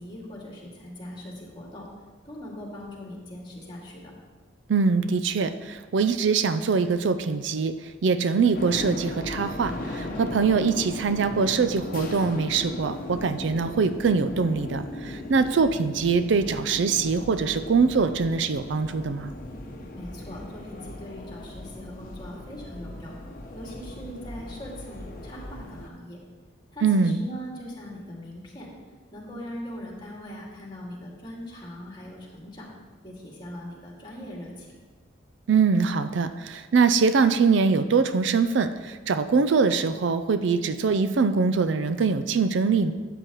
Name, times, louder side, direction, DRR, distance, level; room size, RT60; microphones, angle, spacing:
voice 1, 0.0-1.8 2.2-4.1 19.9-23.1 23.5-26.2 26.7-28.7 29.1-32.7 33.0-34.7, left 1 dB, 25° left, -3 dB, 2.1 m, -40 dB
voice 2, 4.7-19.3 26.8-27.2 35.5-42.9, right 5 dB, 65° right, 11 dB, 0.4 m, -23 dB
sound 1, 8.5-25.9, left 1 dB, 45° left, 1.0 m, -37 dB
12.5 x 8.0 x 3.0 m, 1.4 s
head